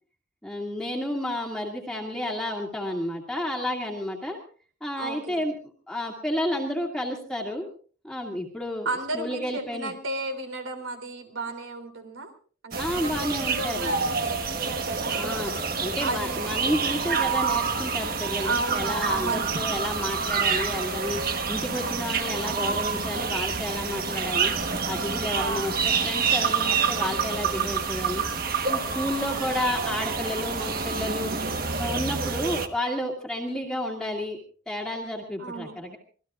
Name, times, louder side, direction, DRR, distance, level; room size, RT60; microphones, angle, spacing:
voice 1, 0.4-4.4 4.8-5.6 5.9-7.7 8.0-8.9 9.1-9.9 12.8-13.9 15.2-21.2 21.5-24.5 24.9-28.2 28.7-31.3 31.8-34.4 34.7-36.0, left 1 dB, 5° left, 0 dB, 2.1 m, -31 dB
voice 2, 5.0-5.4 8.8-12.3 12.6-15.2 16.0-16.4 18.4-19.5 25.4-25.8 29.3-29.4 35.4-35.7, right 3 dB, 80° right, 7 dB, 3.2 m, -33 dB
sound 1, 12.7-32.7, right 5 dB, 45° right, 1.3 m, -27 dB
26.0 x 18.5 x 2.5 m, 0.42 s
head